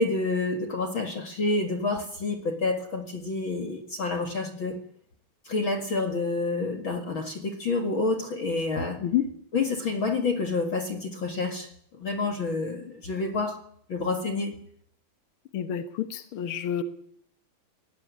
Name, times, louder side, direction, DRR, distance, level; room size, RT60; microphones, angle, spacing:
voice 1, 0.0-4.8 5.4-9.0 9.5-13.6 13.9-14.6, left 3 dB, 40° left, 6 dB, 2.2 m, -28 dB
voice 2, 15.5-16.8, left 10 dB, 70° left, 10 dB, 1.2 m, -28 dB
20.0 x 17.5 x 9.6 m, 0.64 s
omnidirectional pair, 4.2 m